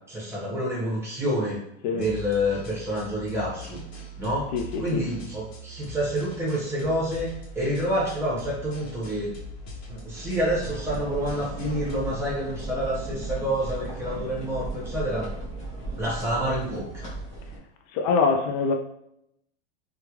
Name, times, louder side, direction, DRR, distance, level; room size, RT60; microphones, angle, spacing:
voice 1, 0.1-1.6 1.9-3.8 4.2-4.5 4.8-7.3 7.5-9.3 9.9-15.3 16.0-17.1, equal, 10° right, 1.1 m, -28 dB
sound 1, 2.0-12.2, left 1 dB, 65° left, 1.1 m, -42 dB
voice 2, 4.5-5.0 17.9-18.7, left 4 dB, 35° left, 0.4 m, -24 dB
sound 2, 10.2-17.6, right 2 dB, 20° left, 1.2 m, -36 dB
3.3 x 2.4 x 3.0 m
supercardioid pair, 155°, 33 cm